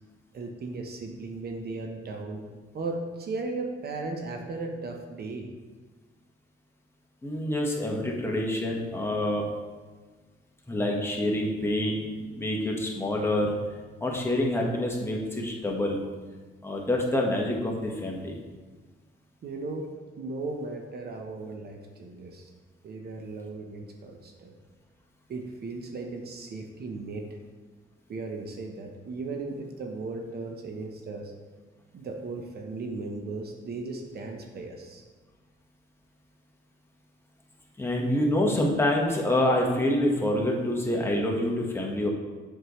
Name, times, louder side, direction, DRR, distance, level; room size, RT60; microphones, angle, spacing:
voice 1, 0.3-2.4 2.7-5.5 19.4-19.9 20.2-22.5 22.8-24.5 25.3-27.2 28.1-31.3 31.9-35.0, right 3 dB, 55° right, 3 dB, 0.9 m, -36 dB
voice 2, 7.2-9.4 10.7-13.5 14.0-16.0 16.6-18.4 37.8-42.1, left 1 dB, 10° left, -2 dB, 1.4 m, -27 dB
7.9 x 6.4 x 3.2 m, 1.4 s
cardioid pair, 90°, 20 cm